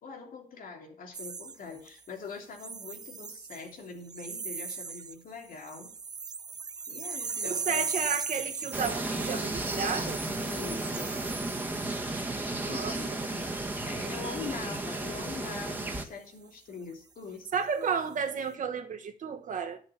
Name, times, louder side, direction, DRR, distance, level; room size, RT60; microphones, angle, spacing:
voice 1, 0.0-5.9 6.9-8.2 10.4-11.2 12.6-13.5 13.8-17.9, left 5 dB, 90° left, 3.1 m, -43 dB
sound 1, 1.1-2.1 2.6-3.7 4.1-5.1 5.4-12.3 12.8-13.1, right 5 dB, 30° right, 0.5 m, -38 dB
voice 2, 7.4-10.2 12.6-13.2 17.5-19.8, right 6 dB, 65° right, 1.4 m, -32 dB
sound 2, 8.7-16.0, right 2 dB, 15° right, 1.4 m, -34 dB
11.5 x 6.4 x 7.2 m
wide cardioid pair, 170°, 14 cm